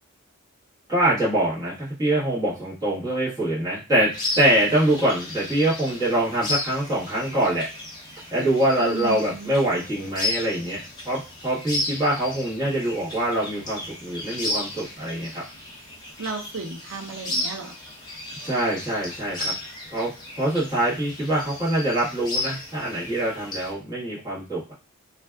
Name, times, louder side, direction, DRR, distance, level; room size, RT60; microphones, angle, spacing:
voice 1, 0.9-4.1 4.3-7.7 8.3-15.4 18.4-19.5 19.9-20.1 20.4-24.7, right 1 dB, 15° right, -10 dB, 1.3 m, -24 dB
sound 1, 4.1-23.7, left 2 dB, 20° left, 0.6 m, -34 dB
voice 2, 8.8-9.5 16.2-17.7, right 3 dB, 75° right, 2 dB, 0.6 m, -34 dB
2.6 x 2.3 x 2.2 m, 0.33 s
head